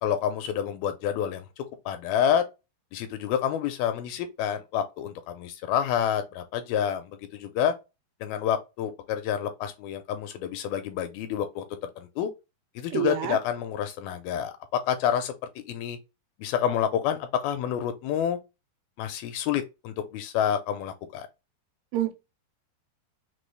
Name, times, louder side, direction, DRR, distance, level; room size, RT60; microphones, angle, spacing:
voice 1, 0.0-2.4 2.9-7.7 8.2-11.7 12.0-12.3 12.8-15.3 15.7-16.0 16.4-18.4 19.0-21.3, left 9 dB, 80° left, 2.3 m, -28 dB
voice 2, 12.9-13.4 21.9-22.1, right 10 dB, 90° right, 2.7 m, -27 dB
6.1 x 2.3 x 3.2 m
omnidirectional pair, 4.5 m